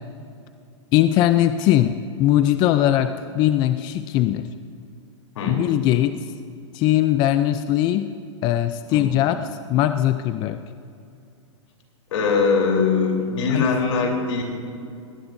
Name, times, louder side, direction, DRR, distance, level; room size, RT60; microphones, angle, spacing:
voice 1, 0.9-4.5 5.5-6.2 6.7-8.1 8.4-10.6 13.5-13.6, left 12 dB, 30° left, 10 dB, 0.4 m, -20 dB
voice 2, 12.1-14.4, left 4 dB, 70° left, 1 dB, 3.6 m, -21 dB
20.5 x 18.5 x 2.7 m, 2.5 s
hypercardioid pair, 140°, 16 cm